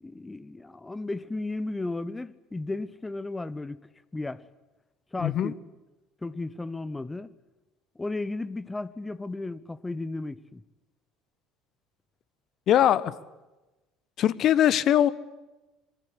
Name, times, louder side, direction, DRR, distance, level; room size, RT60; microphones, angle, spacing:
voice 1, 0.0-3.8 4.1-4.4 5.1-5.5 6.2-7.3 7.9-10.6, left 2 dB, 15° left, 1.4 m, -34 dB
voice 2, 5.2-5.5 12.7-13.1 14.2-15.1, left 11 dB, 45° left, 1.3 m, -21 dB
26.5 x 23.0 x 8.4 m
figure-of-eight pair, 60°, 0 cm